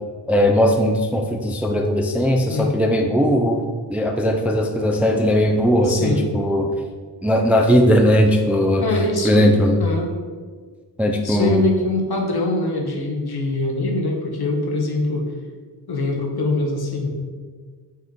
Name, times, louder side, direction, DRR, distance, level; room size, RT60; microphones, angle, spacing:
voice 1, 0.3-6.7 7.2-9.8 11.0-11.6, equal, 5° right, 2 dB, 0.3 m, -18 dB
voice 2, 5.9-6.3 8.8-10.1 11.2-15.3 15.9-17.1, left 2 dB, 60° left, 1 dB, 0.9 m, -23 dB
5.6 x 2.4 x 3.9 m, 1.5 s
cardioid pair, 55°, 43 cm